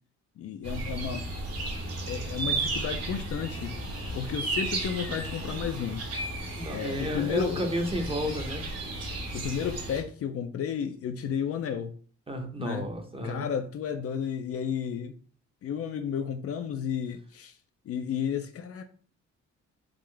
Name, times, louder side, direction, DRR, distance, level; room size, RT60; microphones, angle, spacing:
voice 1, 0.4-1.3 2.1-3.8 4.1-6.1 6.7-7.7 9.3-11.9 12.6-12.9 13.2-15.2 15.6-17.5 17.9-18.8, left 8 dB, 50° left, 0.4 m, -32 dB
sound 1, 0.6-10.0, right 2 dB, 55° right, 1.4 m, -34 dB
voice 2, 6.6-8.6 12.3-13.5, equal, 20° right, 0.7 m, -32 dB
3.7 x 2.4 x 3.2 m
cardioid pair, 90°, 30 cm